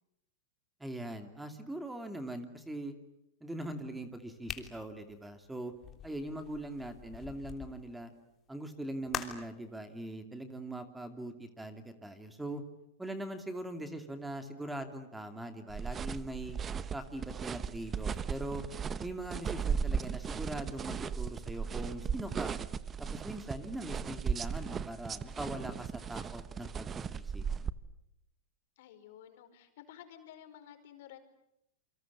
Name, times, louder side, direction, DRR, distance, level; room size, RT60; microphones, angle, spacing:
voice 1, 0.8-2.9 3.4-5.7 6.0-8.1 8.5-12.6 13.0-16.6 16.9-18.6 19.0-22.5 23.0-27.4, right 1 dB, 5° right, 7 dB, 2.7 m, -41 dB
sound 1, 4.4-7.7 9.1-9.6, left 8 dB, 25° left, 3.3 m, -43 dB
sound 2, 15.7-27.7, right 6 dB, 20° right, 1.0 m, -37 dB
voice 2, 28.8-31.2, left 10 dB, 65° left, 8 dB, 5.0 m, -52 dB
28.5 x 25.0 x 8.5 m, 0.81 s
hypercardioid pair, 120°, 0 cm